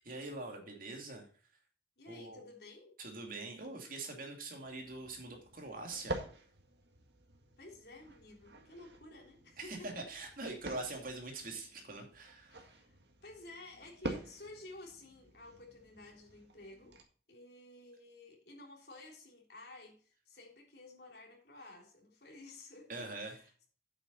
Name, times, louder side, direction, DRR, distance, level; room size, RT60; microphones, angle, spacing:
voice 1, 0.0-1.3 2.1-2.4 3.0-6.2 9.6-12.5 22.9-23.5, right 2 dB, 50° right, 2.7 m, -43 dB
voice 2, 2.0-3.0 7.6-10.5 12.5-17.0 17.3-23.7, left 2 dB, 65° left, 3.4 m, -53 dB
sound 1, 4.6-17.0, right 2 dB, 80° right, 1.8 m, -48 dB
8.8 x 8.5 x 4.0 m
head